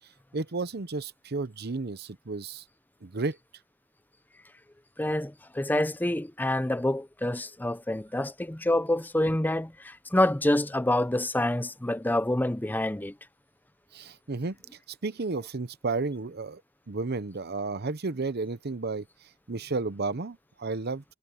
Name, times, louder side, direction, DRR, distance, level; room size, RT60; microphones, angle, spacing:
voice 1, 0.3-2.6 3.0-3.4 13.9-14.6 15.0-16.6 16.9-19.1 19.5-21.0, right 3 dB, 55° right, 0.9 m, -32 dB
voice 2, 5.0-13.1, left 1 dB, 10° left, 0.6 m, -27 dB
head